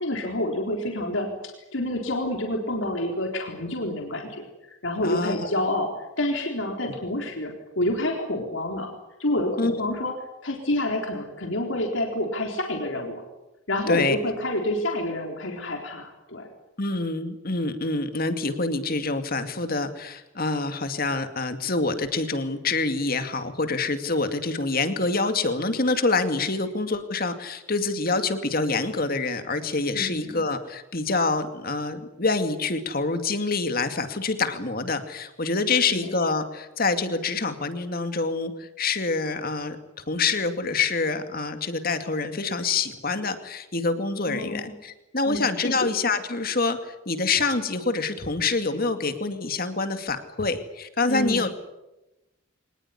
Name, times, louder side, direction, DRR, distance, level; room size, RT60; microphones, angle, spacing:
voice 1, 0.0-8.9 9.2-10.1 10.4-13.2 13.7-16.5 29.9-30.4 35.9-36.1 44.3-44.7 45.3-45.8 51.1-51.5, left 1 dB, 70° left, 2 dB, 4.0 m, -28 dB
voice 2, 5.0-5.5 6.8-6.9 9.6-9.8 13.9-14.2 16.8-39.8 40.1-51.5, left 3 dB, 45° left, 8 dB, 2.4 m, -26 dB
24.5 x 20.0 x 10.0 m, 0.98 s
head